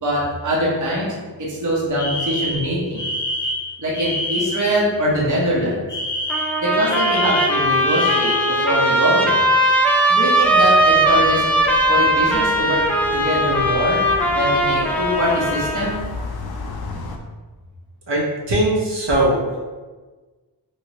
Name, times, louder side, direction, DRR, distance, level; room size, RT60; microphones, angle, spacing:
voice 1, 0.0-1.1 1.4-3.1 3.8-5.8 6.6-9.4 10.1-11.4 11.9-12.8 13.1-16.1, equal, 45° right, -5 dB, 0.9 m, -22 dB
Alarm, 2.0-4.7 5.9-8.6, left 1 dB, 25° left, 0.9 m, -26 dB
Trumpet, 6.3-16.0, right 1 dB, 5° left, 0.3 m, -19 dB
sound 1, 10.4-17.2, left 3 dB, 60° left, 0.5 m, -34 dB
voice 2, 18.1-19.4, right 1 dB, 70° right, -5 dB, 1.0 m, -19 dB
3.0 x 2.8 x 2.9 m, 1.3 s
wide cardioid pair, 90°, 44 cm